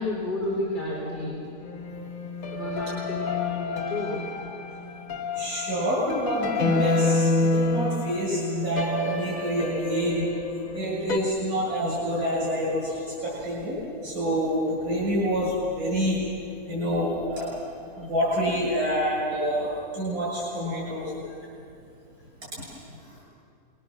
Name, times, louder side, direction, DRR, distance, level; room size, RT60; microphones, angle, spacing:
voice 1, 0.0-1.4 2.5-4.3, left 2 dB, 30° left, -5 dB, 4.7 m, -31 dB
sound 1, 1.6-11.2, left 2 dB, 65° left, 1.8 m, -28 dB
voice 2, 5.4-10.3 10.7-16.2 16.6-17.5 17.8-21.3 22.6-22.7, equal, 80° right, -5 dB, 7.3 m, -27 dB
27.5 x 22.0 x 7.3 m, 2.5 s
omnidirectional pair, 1.6 m